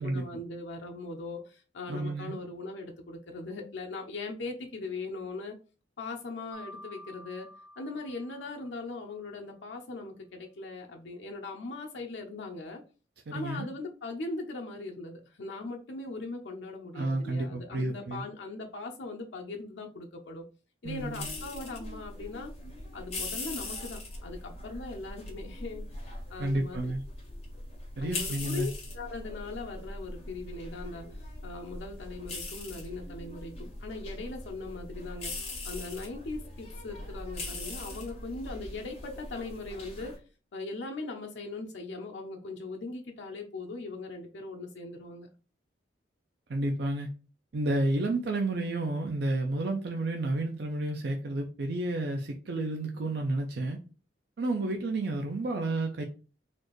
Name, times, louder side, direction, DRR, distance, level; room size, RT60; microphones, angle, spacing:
voice 1, 0.0-5.6 6.0-7.5 7.8-12.8 13.3-20.4 20.8-22.5 22.9-26.9 28.0-40.1 40.5-45.3, left 3 dB, 75° left, 2 dB, 0.6 m, -40 dB
voice 2, 1.9-2.4 13.3-13.7 16.9-18.2 20.8-21.3 26.4-27.0 28.0-28.7 46.5-47.1 47.5-53.8 54.4-56.0, right 2 dB, 65° right, 3 dB, 0.5 m, -31 dB
Mallet percussion, 6.5-9.3, left 1 dB, 20° right, 0.8 m, -50 dB
sound 1, 20.8-40.2, left 2 dB, 35° left, 1.2 m, -41 dB
4.2 x 2.5 x 3.0 m, 0.35 s
head